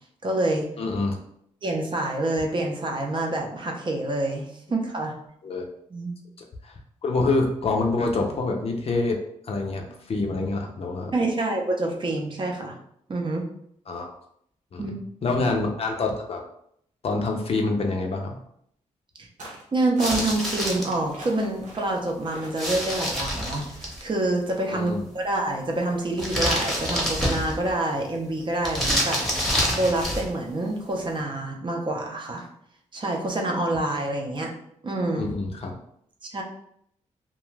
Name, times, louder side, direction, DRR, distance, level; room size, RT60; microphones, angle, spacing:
voice 1, 0.2-0.7 1.6-5.1 5.9-6.1 11.1-12.7 13.1-13.4 14.8-14.9 15.2-15.4 19.2-19.3 19.7-29.3 29.7-32.5 32.9-34.5 34.8-35.3 36.3-36.4, right 2 dB, 40° right, 0 dB, 0.6 m, -27 dB
voice 2, 0.8-1.2 5.4-5.6 6.6-6.7 7.0-9.2 9.4-11.1 13.9-14.1 14.7-16.4 17.0-18.4 24.7-25.0 35.2-35.8, left 3 dB, 50° left, 2 dB, 0.5 m, -26 dB
sound 1, 19.4-19.7 19.9-20.7 21.1-21.9 22.2-22.5 22.9-23.2, equal, 80° right, 0.9 m, -41 dB
sound 2, 20.0-20.9 22.6-24.0 26.2-27.7 28.6-30.3, equal, ahead, 0.9 m, -27 dB
2.4 x 2.2 x 3.1 m, 0.70 s
cardioid pair, 80°, 13 cm